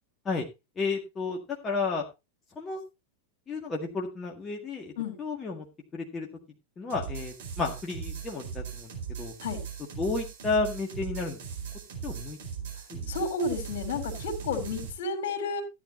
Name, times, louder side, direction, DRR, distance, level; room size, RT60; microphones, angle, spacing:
voice 1, 0.8-1.4 1.6-2.0 2.5-2.8 3.5-4.9 5.2-5.7 5.9-6.3 6.8-8.9 9.2-9.3 10.0-11.4 12.0-12.4 12.9-13.1, left 4 dB, 20° left, 0 dB, 1.8 m, -32 dB
sound 1, 6.9-14.9, right 7 dB, 60° right, 4.7 m, -39 dB
voice 2, 13.1-15.6, left 3 dB, 55° left, 5 dB, 3.2 m, -31 dB
14.5 x 9.5 x 2.8 m, 0.25 s
figure-of-eight pair, 90°, 0 cm